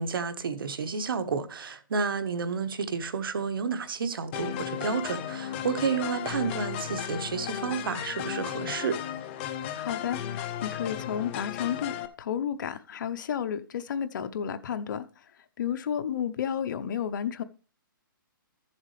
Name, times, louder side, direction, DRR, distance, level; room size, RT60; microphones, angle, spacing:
voice 1, 0.0-9.0, right 5 dB, 85° right, 1.2 m, -30 dB
sound 1, 4.3-12.1, left 10 dB, 30° left, 0.7 m, -35 dB
voice 2, 9.7-15.2 15.6-17.4, left 8 dB, 60° left, 0.8 m, -32 dB
13.5 x 7.2 x 3.2 m
hypercardioid pair, 160°, 12 cm